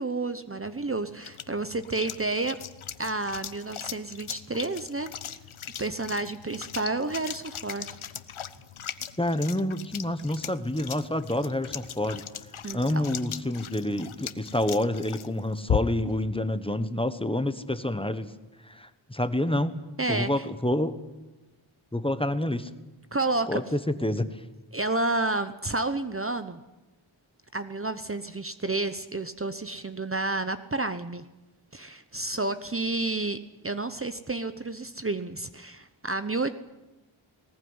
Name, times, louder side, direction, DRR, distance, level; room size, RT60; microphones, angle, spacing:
voice 1, 0.0-2.6 3.0-5.1 5.8-7.9 12.6-13.1 20.0-20.5 23.1-23.6 24.7-26.6 27.5-31.2 31.7-33.4 33.6-36.6, right 2 dB, 25° right, 11 dB, 0.9 m, -30 dB
sound 1, 0.6-16.2, left 9 dB, 75° left, 1.0 m, -38 dB
voice 2, 9.2-12.2 12.7-18.3 18.7-19.7 20.1-21.0 21.9-22.7 23.5-24.4, left 1 dB, 10° left, 11 dB, 1.2 m, -28 dB
20.0 x 19.0 x 9.6 m, 1.1 s
wide cardioid pair, 90°, 49 cm